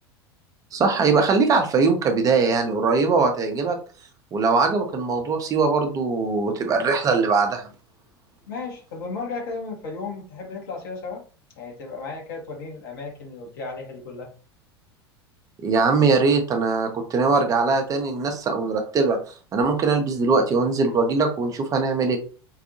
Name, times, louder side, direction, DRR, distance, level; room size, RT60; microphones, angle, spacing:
voice 1, 0.7-3.8 4.3-7.7 15.6-19.2 19.5-22.2, right 4 dB, 25° right, 4 dB, 0.7 m, -21 dB
voice 2, 8.5-11.2 11.5-14.3, left 4 dB, 55° left, 1 dB, 1.4 m, -34 dB
4.7 x 2.6 x 2.7 m, 0.37 s
figure-of-eight pair, 80°, 13 cm